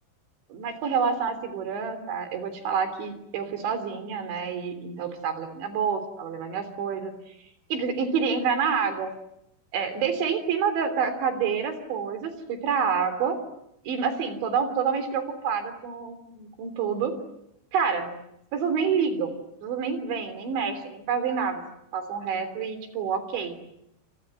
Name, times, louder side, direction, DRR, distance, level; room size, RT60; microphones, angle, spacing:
voice 1, 0.5-7.3 7.7-9.1 9.7-13.4 13.9-17.1 17.7-18.1 18.5-19.3 19.6-21.6 21.9-23.6, right 6 dB, 70° right, 10 dB, 5.7 m, -28 dB
28.0 x 27.0 x 7.8 m, 0.80 s
omnidirectional pair, 5.4 m